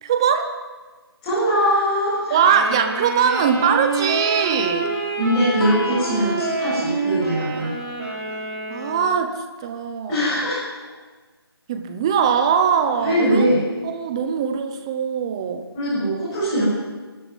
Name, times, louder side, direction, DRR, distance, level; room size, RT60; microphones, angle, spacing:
voice 1, 0.0-0.5 2.3-4.9 8.7-10.4 11.7-13.5 13.8-15.7, right 7 dB, 10° right, 7 dB, 0.8 m, -21 dB
voice 2, 1.2-2.4 5.2-7.7 10.1-10.6 13.0-13.6 15.7-16.6, equal, 15° left, -11 dB, 7.6 m, -21 dB
Wind instrument woodwind instrument, 2.4-9.2, right 3 dB, 35° right, 5.3 m, -27 dB
Guitar, 5.6-8.8, left 3 dB, 60° left, 2.5 m, -36 dB
21.5 x 13.0 x 9.9 m, 1.4 s
hypercardioid pair, 175°, 14 cm